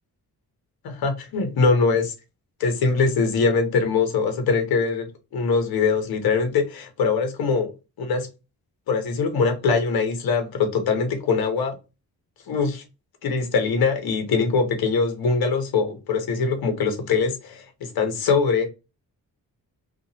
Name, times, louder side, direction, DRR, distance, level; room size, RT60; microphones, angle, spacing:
voice 1, 0.8-2.1 2.6-5.1 5.3-7.7 8.0-8.3 8.9-11.8 12.5-12.8 13.2-18.7, left 4 dB, 75° left, 0.8 m, -22 dB
2.8 x 2.4 x 2.7 m
wide cardioid pair, 120°, 36 cm